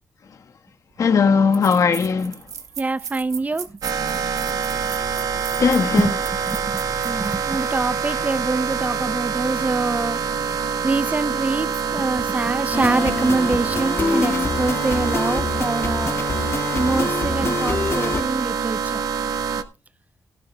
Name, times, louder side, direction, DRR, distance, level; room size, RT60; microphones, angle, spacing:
voice 1, 1.0-2.4 5.6-6.1 8.1-8.2, left 5 dB, 65° left, 1.4 m, -18 dB
sound 1, 1.0-1.1 1.5-7.4, right 7 dB, 70° right, 1.6 m, -37 dB
voice 2, 2.8-3.7 6.0-6.1 6.5-10.2 10.8-16.2 16.7-19.0, right 3 dB, 25° right, 0.6 m, -25 dB
sound 2, 3.8-19.6, right 6 dB, 90° right, 1.0 m, -25 dB
sound 3, 12.7-18.2, left 3 dB, 45° left, 2.0 m, -25 dB
18.0 x 12.0 x 2.3 m
cardioid pair, 90°, 6 cm